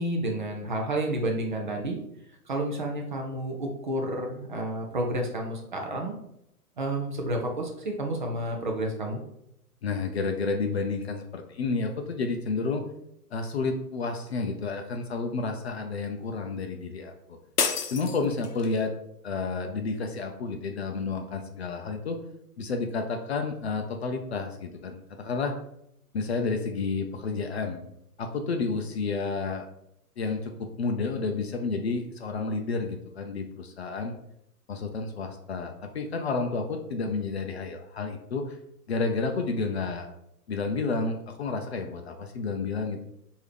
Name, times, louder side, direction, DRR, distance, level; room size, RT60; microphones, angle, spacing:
voice 1, 0.0-2.0 2.5-6.2 6.8-9.2, right 1 dB, 35° right, 1 dB, 0.4 m, -30 dB
voice 2, 9.8-12.9 13.3-17.4 17.9-18.9 19.2-22.2 22.6-25.6 26.1-27.8 28.2-29.7 30.2-34.2 34.7-38.6 38.9-40.1 40.5-43.0, left 4 dB, 45° left, 5 dB, 0.5 m, -30 dB
Jar breaking, 17.6-18.8, left 6 dB, 75° left, 0.7 m, -29 dB
4.5 x 2.7 x 3.2 m, 0.78 s
figure-of-eight pair, 125°, 47 cm